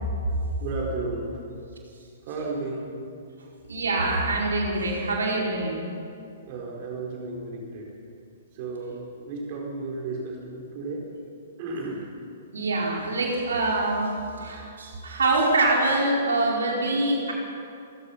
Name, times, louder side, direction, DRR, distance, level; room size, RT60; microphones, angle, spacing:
voice 1, 0.6-1.4 2.2-2.9 6.4-7.9 8.5-11.0 11.6-12.1, right 3 dB, 40° right, -1 dB, 4.3 m, -33 dB
voice 2, 3.7-5.8 12.5-14.1 14.4-17.3, right 2 dB, 65° right, -2 dB, 4.8 m, -24 dB
27.5 x 16.0 x 5.8 m, 2.5 s
figure-of-eight pair, 115°, 0 cm